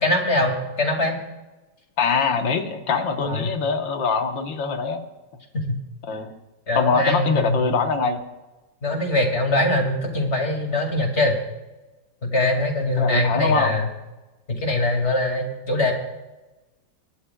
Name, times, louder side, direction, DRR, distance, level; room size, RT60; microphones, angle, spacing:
voice 1, 0.0-1.2 3.2-3.5 5.5-5.8 6.7-7.7 8.8-11.4 12.2-13.9 14.5-15.9, left 1 dB, 35° left, 2 dB, 2.6 m, -22 dB
voice 2, 2.0-5.1 6.1-6.3 6.8-8.2 13.0-13.8, left 5 dB, 85° left, 4 dB, 1.9 m, -23 dB
28.5 x 13.0 x 2.3 m, 1.1 s
omnidirectional pair, 2.0 m